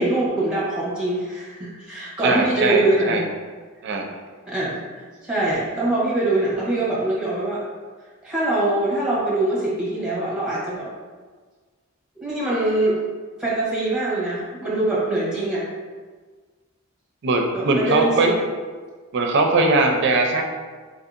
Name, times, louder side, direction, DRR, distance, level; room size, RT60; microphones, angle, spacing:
voice 1, 0.0-3.2 4.5-4.8 5.2-7.6 8.2-10.9 12.2-13.0 13.4-15.6 17.5-18.4, right 2 dB, 5° right, -7 dB, 1.0 m, -23 dB
voice 2, 2.2-3.3 3.8-4.1 17.2-18.3 19.1-20.4, right 3 dB, 55° right, 2 dB, 0.4 m, -20 dB
3.8 x 2.7 x 2.4 m, 1.5 s
head